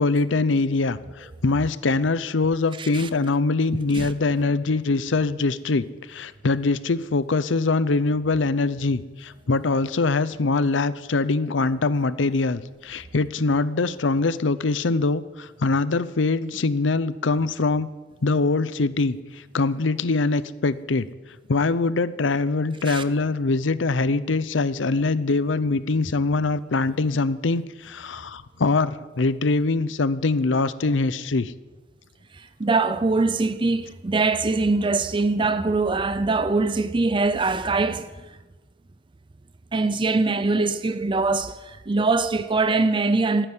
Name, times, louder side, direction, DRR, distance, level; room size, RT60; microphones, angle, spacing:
voice 1, 0.0-17.9 18.2-21.1 21.5-31.5, left 3 dB, 85° left, 0.7 m, -23 dB
voice 2, 2.8-3.1 3.9-4.1 22.9-23.0 32.3-38.1 39.7-43.5, right 3 dB, 25° right, 0.5 m, -23 dB
15.5 x 9.1 x 9.7 m
head